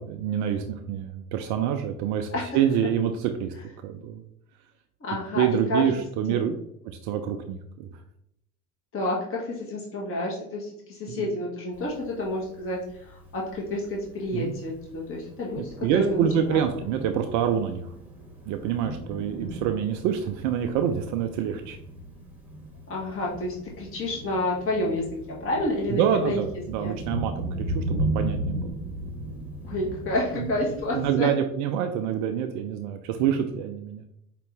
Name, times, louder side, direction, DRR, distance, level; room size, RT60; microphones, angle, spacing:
voice 1, 0.0-3.5 3.8-4.2 5.4-6.6 6.9-7.9 11.1-11.3 14.3-14.5 15.6-17.9 18.5-21.8 25.9-28.8 29.1-29.3 30.4-30.5 30.9-34.0, right 9 dB, 40° right, 6 dB, 0.5 m, -27 dB
voice 2, 5.0-5.9 6.3-6.4 8.9-16.6 22.9-26.4 26.8-26.9 29.6-31.3, left 1 dB, 30° left, -3 dB, 1.2 m, -29 dB
Thunder, 11.7-31.1, right 1 dB, 5° right, 1.2 m, -37 dB
5.2 x 2.5 x 3.2 m, 0.73 s
hypercardioid pair, 75°, 45 cm